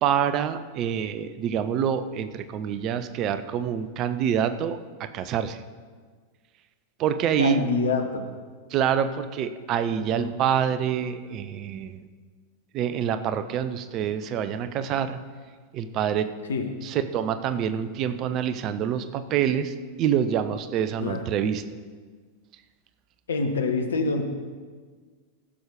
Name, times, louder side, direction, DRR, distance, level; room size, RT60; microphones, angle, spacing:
voice 1, 0.0-5.6 7.0-7.7 8.7-12.0 12.7-15.2 15.7-16.3 16.8-21.6, right 9 dB, 35° right, 11 dB, 0.6 m, -26 dB
voice 2, 7.4-8.2 10.0-10.3 16.5-16.7 21.0-21.3 23.3-24.2, left 4 dB, 70° left, 6 dB, 1.1 m, -26 dB
15.0 x 6.3 x 5.1 m, 1.5 s
figure-of-eight pair, 90°, 0 cm